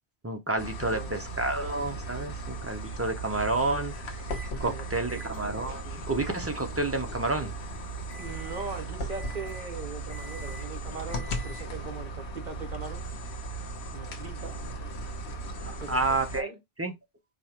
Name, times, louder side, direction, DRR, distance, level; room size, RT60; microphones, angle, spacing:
voice 1, 0.2-4.2 4.6-7.5 15.9-16.5 16.8-16.9, right 2 dB, 20° right, 0.4 m, -30 dB
sound 1, 0.6-16.4, right 2 dB, 85° left, 1.1 m, -37 dB
voice 2, 0.8-1.1 4.5-5.3 8.2-13.0 13.9-14.5 15.8-16.6, right 4 dB, 45° right, 1.0 m, -40 dB
Microwave oven, 4.3-4.6 5.1-11.9, equal, 45° left, 1.1 m, -49 dB
5.0 x 2.3 x 2.9 m
omnidirectional pair, 1.1 m